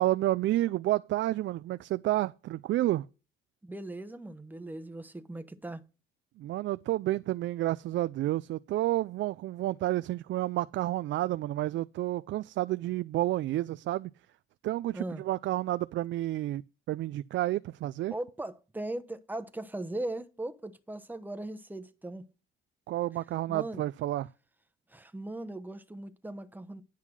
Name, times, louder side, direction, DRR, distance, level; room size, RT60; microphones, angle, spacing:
voice 1, 0.0-3.1 6.4-14.1 14.6-16.6 16.9-18.1 22.9-24.3, right 15 dB, 70° right, 0.4 m, -30 dB
voice 2, 3.6-5.8 14.9-15.2 18.1-22.3 23.5-23.9 24.9-26.8, right 1 dB, 10° right, 1.0 m, -39 dB
9.9 x 5.6 x 6.2 m
cardioid pair, 90°, 20 cm